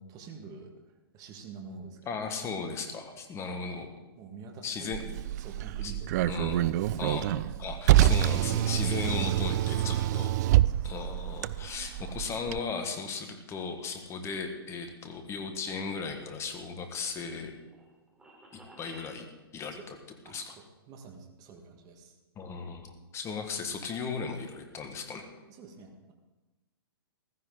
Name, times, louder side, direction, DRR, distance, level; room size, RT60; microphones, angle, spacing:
voice 1, 0.0-2.2 3.4-3.5 4.1-7.6 10.1-11.1 19.7-19.9 20.2-20.4 20.9-22.2 25.5-26.1, right 4 dB, 30° right, 3 dB, 1.8 m, -47 dB
voice 2, 2.1-3.9 4.6-5.0 5.8-5.9 6.3-6.6 7.0-10.3 10.8-17.5 18.8-19.9 20.3-20.5 22.3-25.3, left 5 dB, 20° left, 5 dB, 1.8 m, -36 dB
Car, 4.9-12.6, right 13 dB, 45° right, 0.4 m, -26 dB
sound 1, 16.4-19.1, right 2 dB, 5° right, 3.5 m, -55 dB
15.0 x 14.0 x 3.9 m, 1.1 s
hypercardioid pair, 125°, 13 cm